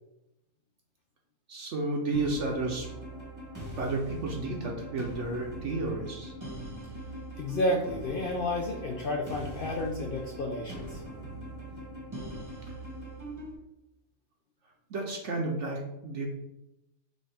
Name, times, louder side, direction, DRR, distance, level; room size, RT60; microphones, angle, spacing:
voice 1, 1.5-2.9 3.8-6.3 14.9-16.3, right 2 dB, 65° right, 0 dB, 0.9 m, -32 dB
sound 1, 2.1-13.5, right 1 dB, 15° right, 0.9 m, -41 dB
voice 2, 7.4-11.0, left 1 dB, 65° left, 0 dB, 0.5 m, -31 dB
6.2 x 2.5 x 3.3 m, 0.89 s
omnidirectional pair, 1.5 m